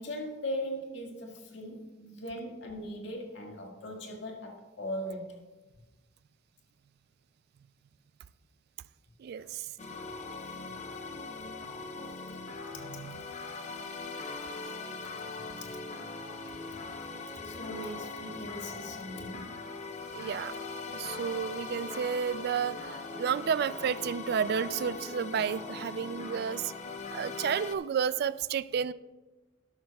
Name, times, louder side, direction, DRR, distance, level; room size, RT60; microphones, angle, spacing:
voice 1, 0.0-5.4 9.4-9.5 10.4-10.8 12.5-13.0 14.5-14.8 15.3-15.8 17.4-19.7, equal, 65° left, 1.9 m, -40 dB
voice 2, 9.2-9.7 12.9-13.2 20.1-20.5 20.9-26.7 27.1-28.9, right 7 dB, 55° right, 0.3 m, -31 dB
sound 1, 9.8-27.8, left 3 dB, 35° left, 0.7 m, -41 dB
12.0 x 12.0 x 2.3 m
head